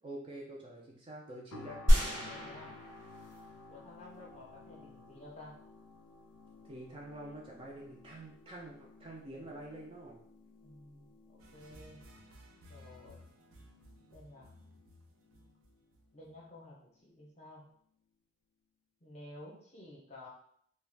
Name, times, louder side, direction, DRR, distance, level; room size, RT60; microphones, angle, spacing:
voice 1, 0.0-1.8 6.6-10.2, right 1 dB, 25° right, -1 dB, 0.3 m, -47 dB
sound 1, 1.5-16.5 17.0-17.2, left 3 dB, 75° left, 0.3 m, -56 dB
sound 2, 1.9-3.6 4.1-4.2, equal, 70° right, 1.0 m, -29 dB
voice 2, 2.3-2.7 3.7-5.6 10.6-11.2 11.5-12.0 12.7-13.2 14.1-14.5 16.1-17.6 19.0-20.3, left 1 dB, 30° left, -4 dB, 0.6 m, -52 dB
sound 3, 11.4-16.4, equal, 90° right, 0.5 m, -57 dB
2.3 x 2.1 x 3.2 m, 0.66 s
head